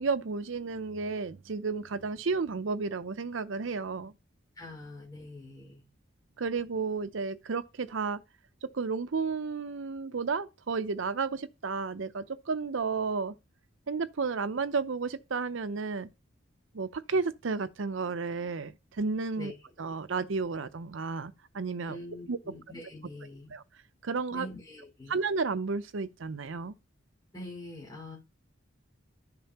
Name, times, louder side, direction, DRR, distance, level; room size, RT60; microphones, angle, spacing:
voice 1, 0.0-4.1 6.4-8.2 8.7-13.3 13.9-16.1 16.7-19.5 19.8-22.0 22.3-22.4 23.5-23.6 24.0-24.5 25.1-26.7, right 4 dB, 70° right, 0.6 m, -32 dB
voice 2, 4.6-5.8 19.4-19.5 21.9-23.5 24.3-25.2 27.3-28.2, left 1 dB, 20° left, 5.4 m, -44 dB
12.0 x 6.8 x 3.0 m
head